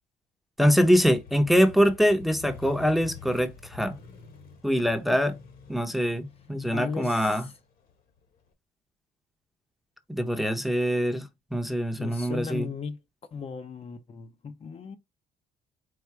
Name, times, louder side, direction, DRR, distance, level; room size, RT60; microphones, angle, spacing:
voice 1, 0.6-4.0 4.6-5.3 5.7-7.4 10.1-12.7, equal, ahead, 0.7 m, -24 dB
Motorcycle, 0.8-8.5, left 6 dB, 60° left, 1.5 m, -48 dB
voice 2, 6.7-7.5 12.0-13.0 13.3-15.0, left 5 dB, 35° left, 0.6 m, -36 dB
4.7 x 2.5 x 4.4 m
cardioid pair, 110°, 17 cm